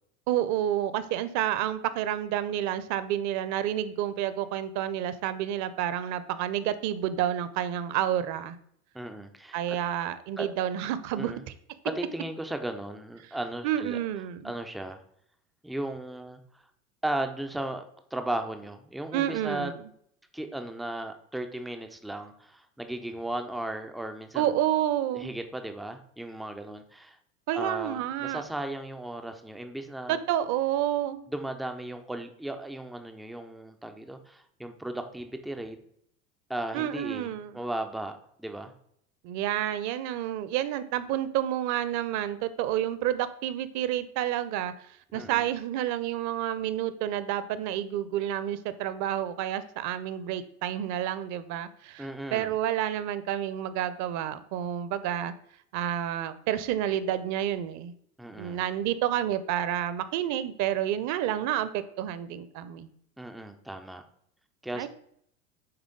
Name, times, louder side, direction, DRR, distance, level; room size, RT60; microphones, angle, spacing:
voice 1, 0.3-8.6 9.5-11.3 13.6-14.5 19.1-19.8 24.3-25.3 27.5-28.4 30.1-31.3 36.7-37.6 39.2-55.3 55.7-57.9 58.3-62.9 64.7-64.9, right 11 dB, 40° right, 14 dB, 0.6 m, -29 dB
voice 2, 8.9-9.8 10.4-10.5 11.1-11.4 12.0-14.0 14.4-15.0 15.6-16.6 17.0-17.8 18.1-19.7 20.3-24.6 25.1-27.2 27.5-30.2 31.3-35.8 36.5-38.7 45.1-45.5 52.0-52.6 58.2-58.6 63.2-64.0 64.6-64.9, right 1 dB, ahead, 6 dB, 0.3 m, -36 dB
8.8 x 3.6 x 3.8 m, 0.68 s
hypercardioid pair, 80°, 43 cm